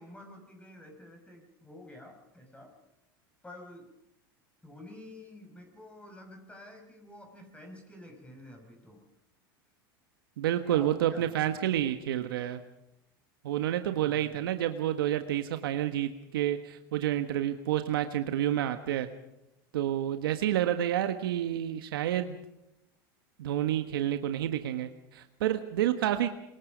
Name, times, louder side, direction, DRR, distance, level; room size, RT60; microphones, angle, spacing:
voice 1, 0.0-2.8 3.4-3.9 4.6-9.1 10.6-11.6 14.0-14.4, left 1 dB, 10° left, 3 dB, 5.7 m, -50 dB
voice 2, 10.4-12.6 13.4-19.1 19.7-22.4 23.4-26.3, right 11 dB, 80° right, 8 dB, 1.4 m, -29 dB
26.0 x 22.0 x 5.3 m, 0.88 s
hypercardioid pair, 95°, 12 cm